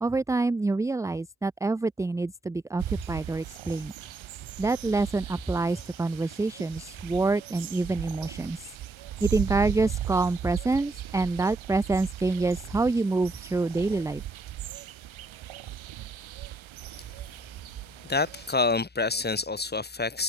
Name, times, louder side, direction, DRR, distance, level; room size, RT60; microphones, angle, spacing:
voice 1, 0.0-3.9 4.6-8.6 9.2-14.2, right 3 dB, 10° right, 0.3 m, -27 dB
sound 1, 2.8-18.5, right 13 dB, 75° right, 3.6 m, -38 dB
voice 2, 18.0-20.2, left 3 dB, 20° left, 7.4 m, -27 dB
cardioid pair, 120°, 47 cm